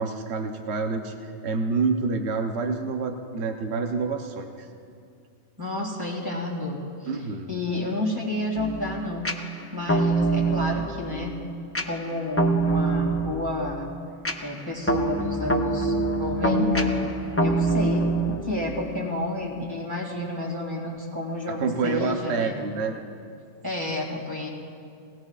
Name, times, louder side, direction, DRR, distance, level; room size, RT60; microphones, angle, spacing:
voice 1, 0.0-4.7 7.1-7.6 21.5-22.9, right 4 dB, 65° right, 3 dB, 1.1 m, -28 dB
voice 2, 5.6-6.8 7.5-9.3 9.7-11.4 11.9-13.9 14.4-16.9 17.4-22.6 23.6-24.5, left 2 dB, 20° right, -2 dB, 2.2 m, -30 dB
sound 1, 8.6-19.2, right 2 dB, 20° left, 0.4 m, -26 dB
21.0 x 17.0 x 2.4 m, 2.4 s
omnidirectional pair, 1.2 m